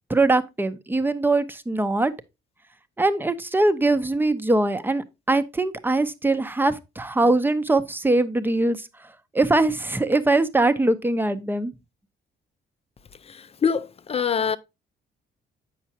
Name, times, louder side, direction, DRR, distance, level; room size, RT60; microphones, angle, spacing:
voice 1, 0.1-2.1 3.0-8.9 9.3-11.7, right 2 dB, 10° right, 0.6 m, -22 dB
voice 2, 13.3-14.6, left 6 dB, 30° left, 0.5 m, -25 dB
7.9 x 5.9 x 2.8 m
cardioid pair, 90°, 20 cm